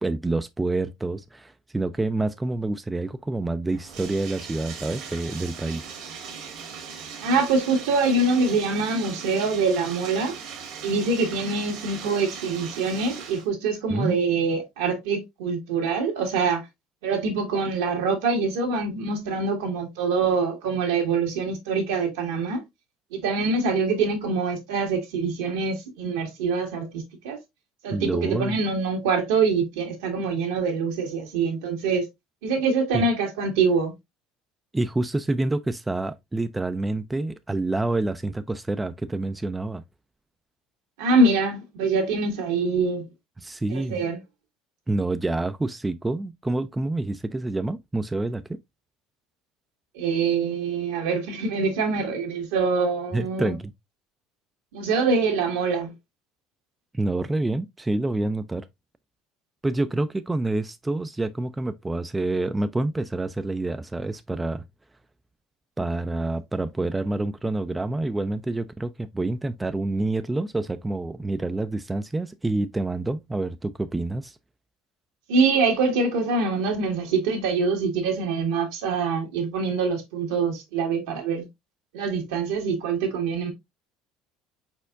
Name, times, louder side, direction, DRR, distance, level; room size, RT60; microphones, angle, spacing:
voice 1, 0.0-5.9 13.9-14.2 27.9-28.6 32.9-33.1 34.7-39.8 43.4-44.0 44.9-48.4 53.1-53.7 56.9-58.7 59.6-64.6 65.8-74.4, right 2 dB, 15° right, 0.4 m, -27 dB
Bathtub (filling or washing), 3.7-13.5, right 6 dB, 65° right, 1.5 m, -39 dB
voice 2, 7.2-10.3 10.8-16.7 17.0-22.6 23.1-27.4 27.8-32.1 32.4-33.9 41.0-43.0 43.7-44.2 49.9-53.5 54.7-55.9 75.3-81.5 81.9-83.5, right 4 dB, 80° right, 1.6 m, -24 dB
4.4 x 4.3 x 2.4 m
hypercardioid pair, 80°, 0 cm